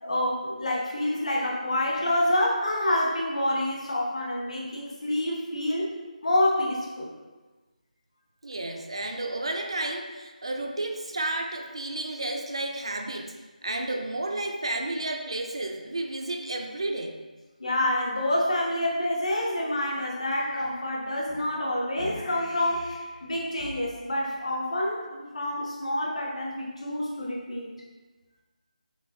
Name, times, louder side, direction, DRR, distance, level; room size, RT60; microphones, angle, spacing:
voice 1, 0.0-5.9 6.2-7.1 17.6-27.7, left 1 dB, 45° left, -2 dB, 0.8 m, -27 dB
voice 2, 8.4-13.3 13.6-17.2, right 2 dB, 40° right, 3 dB, 0.3 m, -32 dB
6.1 x 2.6 x 2.6 m, 1.3 s
figure-of-eight pair, 180°, 5 cm